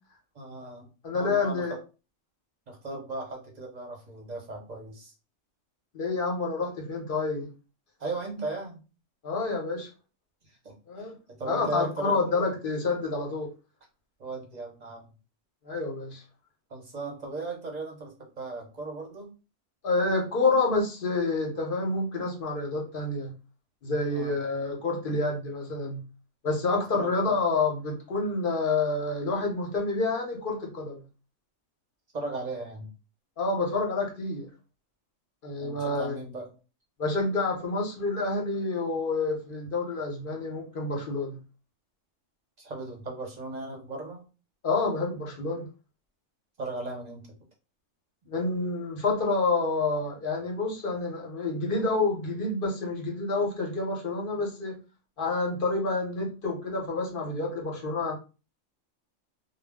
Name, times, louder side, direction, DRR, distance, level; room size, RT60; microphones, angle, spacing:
voice 1, 0.3-1.8 2.7-5.1 8.0-8.8 10.6-10.7 11.3-12.2 14.2-15.0 16.7-19.3 24.1-24.4 26.9-27.1 32.1-32.9 35.6-36.5 42.6-44.2 46.6-47.2, right 2 dB, 40° right, 0 dB, 0.7 m, -37 dB
voice 2, 1.0-1.7 5.9-7.5 9.2-9.9 10.9-11.1 11.4-13.5 15.6-16.2 19.8-23.3 23.8-26.0 26.4-31.0 33.4-34.5 35.4-36.2 37.0-41.4 44.6-45.7 48.3-54.8 55.2-58.2, left 3 dB, 50° left, 0 dB, 0.8 m, -28 dB
2.2 x 2.0 x 3.4 m, 0.32 s
omnidirectional pair, 1.3 m